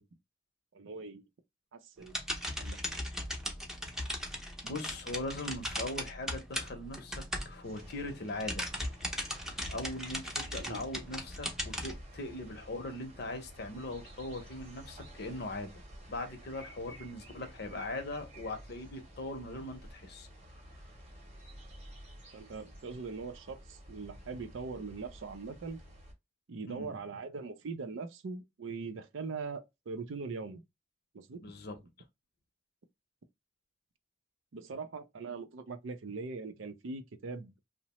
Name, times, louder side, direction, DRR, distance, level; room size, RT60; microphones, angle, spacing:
voice 1, 0.7-1.3 1.7-2.2 2.6-2.8 10.6-10.8 22.3-25.8 26.5-30.6 31.1-31.4 34.5-37.7, right 4 dB, 70° right, 0.5 m, -41 dB
sound 1, 2.0-8.0 8.3-11.9, equal, ahead, 0.6 m, -38 dB
voice 2, 4.6-8.7 9.7-15.8 16.1-20.3 26.7-26.9 31.4-31.8, left 2 dB, 55° left, 0.7 m, -40 dB
sound 2, 7.6-26.1, equal, 30° right, 0.9 m, -52 dB
2.8 x 2.0 x 2.9 m
head